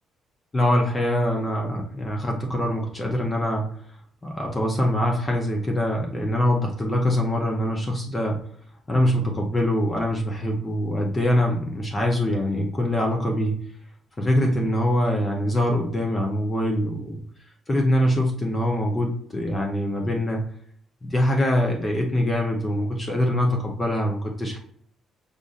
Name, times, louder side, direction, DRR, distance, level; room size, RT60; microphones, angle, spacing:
voice 1, 0.5-3.7 4.2-8.4 8.9-13.6 14.2-17.2 17.7-20.5 21.0-24.6, left 1 dB, 20° left, 1 dB, 0.6 m, -24 dB
5.0 x 2.5 x 2.4 m, 0.62 s
cardioid pair, 135°, 0 cm